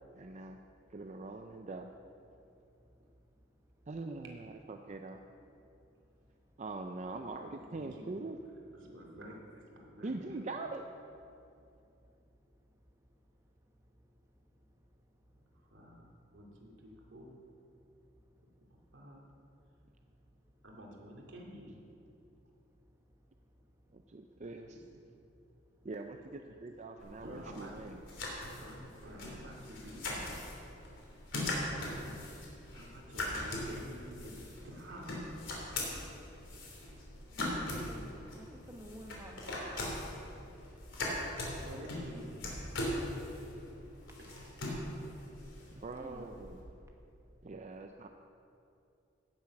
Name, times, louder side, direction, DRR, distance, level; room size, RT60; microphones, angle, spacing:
voice 1, 0.1-0.6 0.9-1.9 3.9-5.2 6.6-8.4 10.0-10.8 23.9-24.8 25.8-28.0 45.7-46.7 47.4-48.1, right 3 dB, 40° right, 4 dB, 0.5 m, -43 dB
voice 2, 7.6-8.1 8.7-10.4 15.5-17.4 18.9-19.2 20.6-21.8 24.7-25.0 26.5-26.6 27.2-27.7 28.6-30.3 32.7-35.1 41.3-42.5 44.2-44.4 46.1-46.2, equal, 90° right, -1 dB, 2.6 m, -50 dB
sound 1, 27.0-46.6, left 1 dB, 80° left, 3.2 m, -41 dB
voice 3, 37.4-39.5 45.9-46.3, equal, 15° right, 0 dB, 1.3 m, -50 dB
16.5 x 7.3 x 6.0 m, 2.7 s
head